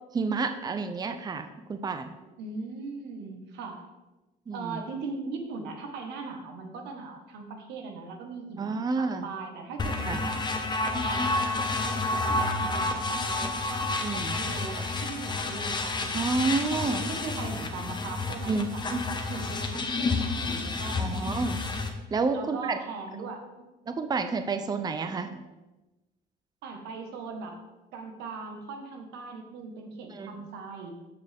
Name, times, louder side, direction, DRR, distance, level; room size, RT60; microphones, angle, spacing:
voice 1, 0.1-2.1 4.5-4.8 8.6-9.3 10.0-10.2 14.0-14.4 16.1-17.0 18.5-19.0 21.0-21.6 22.1-22.8 23.9-25.4 30.2-30.3, right 4 dB, 25° right, 8 dB, 0.6 m, -29 dB
voice 2, 2.2-3.9 4.5-10.5 10.9-16.3 16.7-18.8 19.3-21.5 22.3-23.4 26.6-27.6 27.9-30.9, right 4 dB, 90° right, 4 dB, 1.5 m, -39 dB
sound 1, 9.8-21.9, left 3 dB, 25° left, 1.1 m, -30 dB
13.5 x 5.2 x 3.6 m, 1.1 s
cardioid pair, 110°, 17 cm